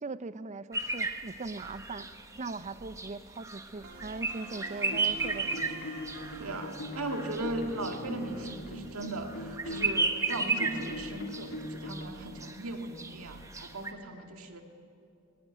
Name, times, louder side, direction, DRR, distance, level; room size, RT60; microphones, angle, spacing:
voice 1, 0.0-2.1 2.4-5.7, right 3 dB, 35° right, 15 dB, 0.5 m, -40 dB
sound 1, 0.7-13.9, right 3 dB, 15° right, 1.0 m, -35 dB
sound 2, 3.8-10.5, right 4 dB, 65° right, 1.7 m, -52 dB
sound 3, 4.9-12.1, left 1 dB, 60° left, 2.5 m, -41 dB
voice 2, 6.4-14.6, right 2 dB, 85° right, 4 dB, 1.8 m, -38 dB
19.5 x 17.5 x 9.0 m, 2.7 s
head